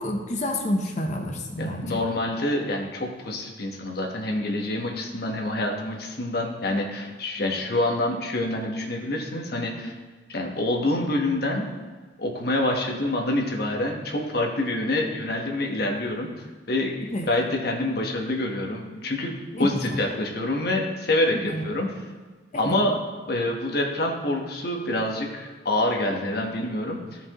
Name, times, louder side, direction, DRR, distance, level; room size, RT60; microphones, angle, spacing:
voice 1, 0.0-2.0 17.0-17.3 19.5-20.0 21.3-21.7 22.5-22.8 26.3-26.5, left 1 dB, 40° left, 3 dB, 0.8 m, -29 dB
voice 2, 1.6-9.9 10.3-11.7 12.2-16.3 16.7-17.0 17.3-19.3 19.6-21.9 22.5-23.0 23.3-27.2, left 1 dB, 55° left, 1 dB, 1.2 m, -26 dB
15.0 x 5.3 x 3.0 m, 1.4 s
head